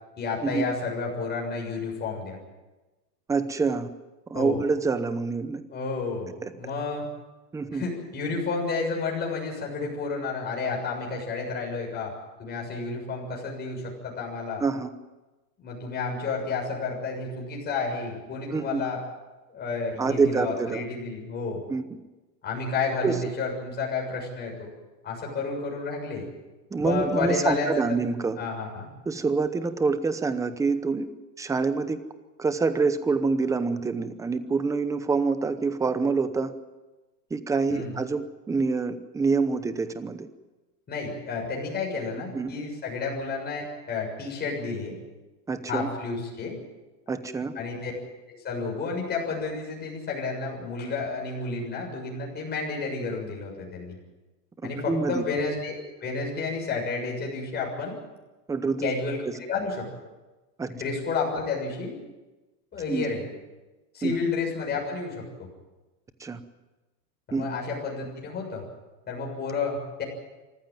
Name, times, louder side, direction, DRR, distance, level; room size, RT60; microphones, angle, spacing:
voice 1, 0.2-2.4 4.3-4.6 5.7-7.1 7.7-12.1 12.4-14.6 15.6-19.0 19.5-21.6 22.4-24.7 25.0-26.3 26.8-28.0 28.4-28.9 37.7-38.0 40.9-45.0 45.7-46.6 47.5-47.9 48.3-54.0 54.6-55.8 56.0-58.0 58.8-59.9 60.7-62.0 62.7-63.3 63.9-65.5 67.3-68.6 69.1-70.0, left 4 dB, 20° left, -1 dB, 6.9 m, -31 dB
voice 2, 3.3-3.9 4.3-5.6 6.4-6.5 7.5-7.9 14.6-14.9 18.5-18.8 20.0-20.8 21.7-21.8 23.0-23.2 26.7-28.4 29.1-31.1 31.4-32.0 32.4-36.5 37.3-40.3 42.3-42.5 45.5-45.9 47.1-47.5 54.9-55.2 58.5-58.9 60.6-60.7 62.9-63.1 64.0-64.1 66.2-66.4 67.3-67.5, right 4 dB, 5° right, 11 dB, 0.8 m, -26 dB
25.0 x 15.0 x 9.2 m, 1.1 s
supercardioid pair, 155°, 49 cm